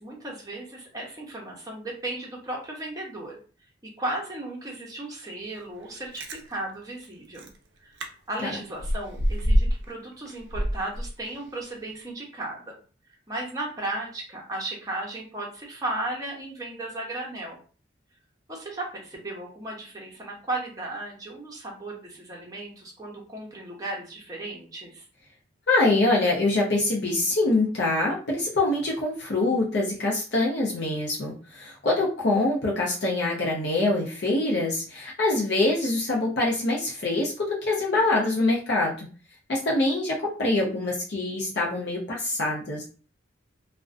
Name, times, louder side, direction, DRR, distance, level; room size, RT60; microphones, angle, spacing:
voice 1, 0.0-3.4 4.0-7.5 7.8-12.8 13.3-17.6 18.5-25.1, right 2 dB, 20° right, -2 dB, 0.6 m, -35 dB
Chewing mastication, 5.9-6.4 7.0-7.1 7.4-7.6 8.0-8.1 8.4-9.9 10.3-11.5 11.9-12.0, equal, 65° right, 0.4 m, -26 dB
voice 2, 25.7-39.1 39.5-42.8, left 2 dB, 60° left, -3 dB, 0.5 m, -24 dB
2.4 x 2.1 x 2.4 m, 0.39 s
head